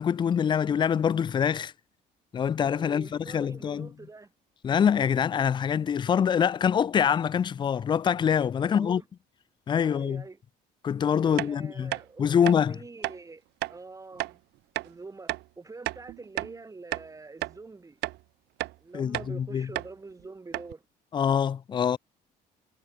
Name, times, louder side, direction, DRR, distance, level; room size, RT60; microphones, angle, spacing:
voice 1, 0.0-1.7 2.3-3.9 4.6-9.0 9.7-10.2 10.8-11.9 12.2-12.8 18.9-19.7 21.1-22.0, left 8 dB, 25° left, 0.3 m, -25 dB
voice 2, 2.7-4.3 8.6-9.0 9.8-10.4 11.2-14.4 14.8-18.0 18.8-20.8, right 3 dB, 20° right, 4.4 m, -45 dB
sound 1, 11.4-11.5 11.9-12.0 12.4-12.6 13.0-13.2 13.6-13.8 14.2-14.3 14.8-14.9 15.3-15.5 15.9-16.6 16.9-17.1 17.4-17.6 18.0-18.2 18.6-18.8 19.1-19.3 19.8-19.9 20.2-20.3 20.5-20.7, right 19 dB, 80° right, 0.7 m, -32 dB
cardioid pair, 110°, 17 cm